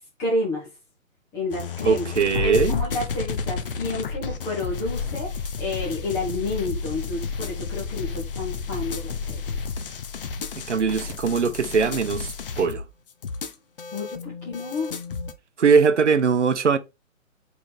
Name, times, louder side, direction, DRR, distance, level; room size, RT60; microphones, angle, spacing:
voice 1, 0.2-0.7 1.3-2.0 2.4-9.4 13.9-14.9, left 2 dB, 5° left, 0.6 m, -30 dB
sound 1, 1.5-15.3, left 5 dB, 40° left, 0.8 m, -31 dB
voice 2, 1.8-2.8 10.7-12.8 15.6-16.8, right 5 dB, 60° right, 0.9 m, -21 dB
4.7 x 4.2 x 5.2 m
figure-of-eight pair, 130°, 41 cm